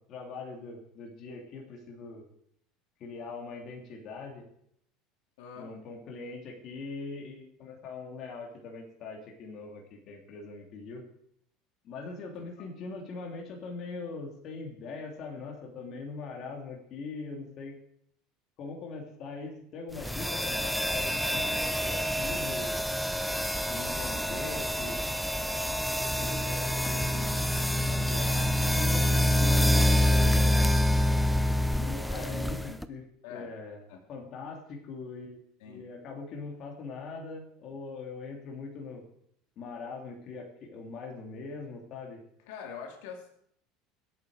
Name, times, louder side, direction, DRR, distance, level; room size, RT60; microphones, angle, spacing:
voice 1, 0.0-2.2 3.0-4.4 5.6-11.0 11.8-17.7 18.6-22.8 23.7-25.0 25.9-27.3 27.7-30.5 31.7-33.0 33.3-33.8 34.1-35.4 35.6-39.0 39.6-42.2, left 4 dB, 35° left, 0 dB, 2.8 m, -41 dB
voice 2, 5.4-5.7 12.6-12.7 32.1-32.4 32.7-32.8 33.2-33.5 33.9-34.0 35.6-35.9 42.5-43.3, left 6 dB, 80° left, 2 dB, 2.9 m, -43 dB
sound 1, 20.0-32.9, left 1 dB, ahead, 0.5 m, -27 dB
24.5 x 8.5 x 4.9 m, 0.70 s
cardioid pair, 170°, 0 cm